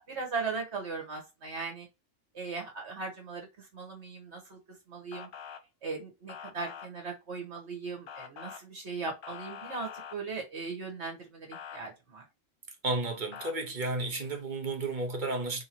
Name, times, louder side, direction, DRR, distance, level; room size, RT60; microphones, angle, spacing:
voice 1, 0.1-1.9 2.3-4.6 4.9-5.3 5.8-12.2, right 4 dB, 60° right, 1.5 m, -38 dB
Motor vehicle (road) / Siren, 5.1-5.6 6.3-6.9 8.1-8.6 9.2-10.2 11.5-11.8 13.3-13.5, left 8 dB, 60° left, 0.8 m, -44 dB
voice 2, 12.8-15.6, right 2 dB, 45° right, 0.8 m, -32 dB
3.8 x 2.7 x 4.3 m
omnidirectional pair, 1.3 m